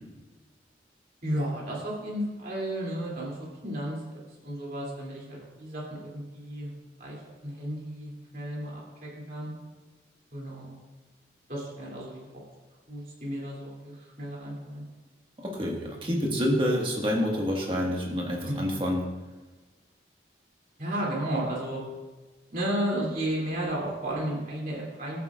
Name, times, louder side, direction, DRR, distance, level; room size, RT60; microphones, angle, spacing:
voice 1, 1.2-6.7 7.0-9.5 10.3-10.7 11.5-12.3 12.9-14.8 18.5-18.6 20.8-21.8 22.5-25.2, right 1 dB, 50° right, -5 dB, 2.8 m, -33 dB
voice 2, 15.4-19.1, equal, 30° right, -1 dB, 1.6 m, -27 dB
13.5 x 8.1 x 2.4 m, 1.2 s
head